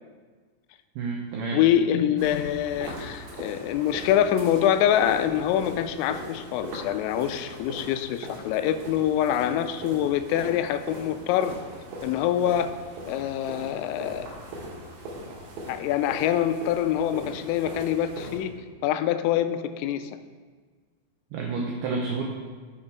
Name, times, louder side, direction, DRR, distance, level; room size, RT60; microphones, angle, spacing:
voice 1, 1.0-1.6 21.3-22.2, right 4 dB, 85° right, 0 dB, 2.2 m, -29 dB
voice 2, 1.5-11.5 12.0-12.7 13.1-14.3 15.7-18.5 18.8-20.2, left 10 dB, 90° left, 10 dB, 3.2 m, -25 dB
sound 1, 2.2-18.4, right 1 dB, 65° right, 3.8 m, -40 dB
11.5 x 7.3 x 4.6 m, 1.5 s
omnidirectional pair, 5.8 m